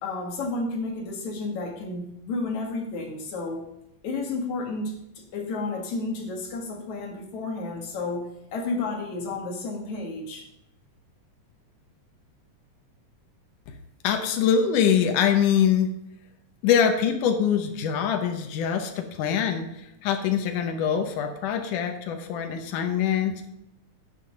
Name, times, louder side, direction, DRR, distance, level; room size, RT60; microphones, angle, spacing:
voice 1, 0.0-3.7 4.0-10.4, left 3 dB, 65° left, 1 dB, 3.2 m, -31 dB
voice 2, 14.0-15.9 16.6-23.5, left 8 dB, 85° left, 5 dB, 2.5 m, -24 dB
10.5 x 7.7 x 5.2 m, 0.83 s
omnidirectional pair, 3.5 m